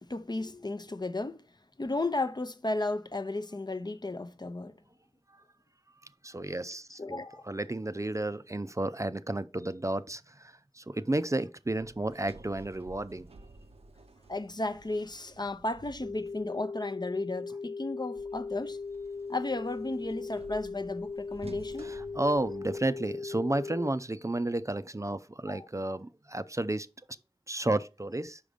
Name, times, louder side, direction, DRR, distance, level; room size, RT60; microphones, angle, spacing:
voice 1, 0.1-1.4 1.8-4.8 7.0-7.5 14.3-18.8 19.3-21.9 25.5-25.7, left 2 dB, 45° left, 0.6 m, -34 dB
voice 2, 6.2-13.3 21.8-26.9 27.5-28.4, right 2 dB, 30° right, 0.4 m, -32 dB
Sliding door, 11.7-16.6 18.1-23.1, right 2 dB, 85° right, 0.6 m, -52 dB
sound 1, 16.0-23.9, left 4 dB, 80° left, 1.1 m, -39 dB
5.1 x 5.0 x 5.0 m
wide cardioid pair, 45°, 10 cm